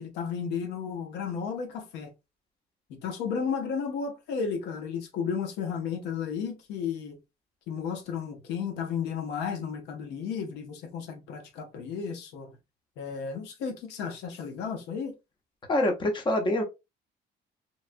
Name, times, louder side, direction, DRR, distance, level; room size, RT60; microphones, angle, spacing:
voice 1, 0.0-2.1 2.9-7.2 7.7-12.5 13.0-15.1, left 6 dB, 90° left, 0.7 m, -33 dB
voice 2, 15.7-16.6, left 1 dB, 30° left, 0.8 m, -25 dB
3.0 x 2.2 x 2.5 m
cardioid pair, 110°, 17 cm